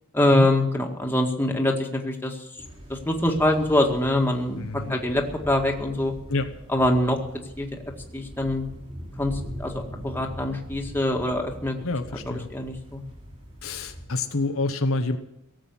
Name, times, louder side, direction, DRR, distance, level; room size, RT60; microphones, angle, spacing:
voice 1, 0.1-2.4 2.9-4.6 4.9-6.1 6.7-7.2 7.6-7.7 8.1-8.6 9.2-11.8 12.3-13.0, left 1 dB, 10° left, 1 dB, 2.0 m, -24 dB
sound 1, 2.6-14.1, equal, 30° right, 5.7 m, -41 dB
voice 2, 4.6-5.0 6.3-6.5 11.8-12.5 13.6-15.2, left 2 dB, 65° left, 6 dB, 1.1 m, -27 dB
18.0 x 7.9 x 9.8 m, 0.85 s
head